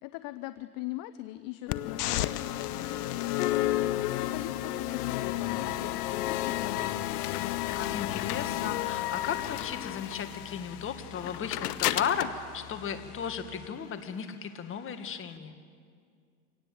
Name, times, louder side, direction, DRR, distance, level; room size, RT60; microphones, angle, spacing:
voice 1, 0.0-7.0, left 16 dB, 45° left, 12 dB, 0.8 m, -41 dB
sound 1, 1.7-13.7, left 15 dB, 75° left, 0.9 m, -32 dB
sound 2, 1.7-9.9, left 1 dB, 70° right, 2.8 m, -53 dB
voice 2, 7.8-15.6, left 7 dB, 25° left, 8 dB, 1.8 m, -35 dB
25.5 x 18.0 x 7.8 m, 2.2 s
supercardioid pair, 120°, 46 cm